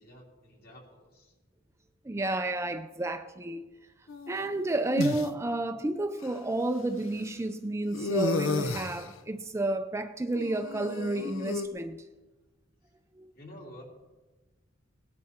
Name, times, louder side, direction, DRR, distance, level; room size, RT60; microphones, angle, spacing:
voice 1, 0.0-1.3 13.3-13.8, equal, 50° left, 3.1 m, -50 dB
voice 2, 2.0-3.7 4.3-12.0 13.2-13.3, right 2 dB, 15° right, 0.4 m, -31 dB
sound 1, 4.1-5.2 6.2-6.3 7.9-9.1 10.3-11.7, left 3 dB, 80° left, 0.7 m, -32 dB
18.0 x 11.0 x 4.4 m
head